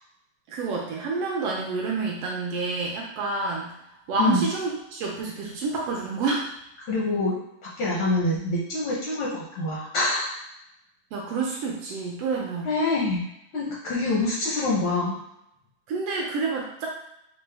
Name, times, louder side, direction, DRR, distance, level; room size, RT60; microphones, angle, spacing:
voice 1, 0.5-3.7 4.1-6.4 11.1-12.7 15.9-16.9, right 4 dB, 75° right, -2 dB, 1.4 m, -28 dB
voice 2, 4.2-4.5 6.8-7.4 7.6-10.4 12.6-13.2 13.5-15.2, left 2 dB, 75° left, -6 dB, 1.1 m, -25 dB
5.2 x 2.1 x 3.3 m, 0.81 s
omnidirectional pair, 3.3 m